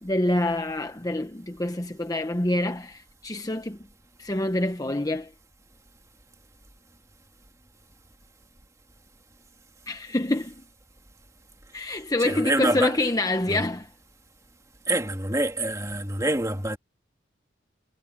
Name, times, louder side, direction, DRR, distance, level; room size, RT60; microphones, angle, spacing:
voice 1, 0.0-3.8 4.2-5.3 9.9-10.5 11.7-13.9, left 1 dB, 20° left, 0.9 m, -26 dB
voice 2, 12.2-13.0 13.5-13.7 14.9-16.8, right 1 dB, 15° right, 2.4 m, -26 dB
head